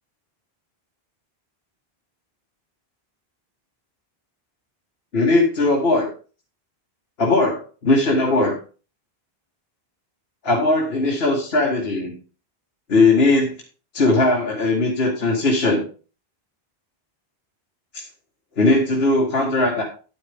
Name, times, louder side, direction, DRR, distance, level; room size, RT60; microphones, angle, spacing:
voice 1, 5.1-6.1 7.2-8.6 10.4-12.2 12.9-13.6 13.9-15.8 17.9-18.0 18.6-19.8, left 2 dB, 75° left, -1 dB, 1.8 m, -19 dB
10.5 x 8.8 x 3.5 m, 0.36 s
omnidirectional pair, 1.1 m